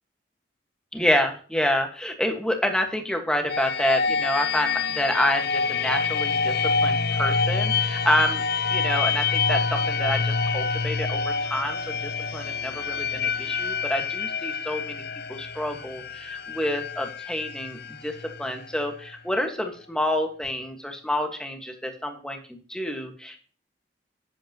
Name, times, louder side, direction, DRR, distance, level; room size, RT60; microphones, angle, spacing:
voice 1, 0.9-8.4 8.7-15.0 15.3-23.4, left 1 dB, 5° left, 4 dB, 1.5 m, -28 dB
sound 1, 3.5-19.1, left 5 dB, 60° left, 0.7 m, -27 dB
11.0 x 8.5 x 2.9 m, 0.41 s
head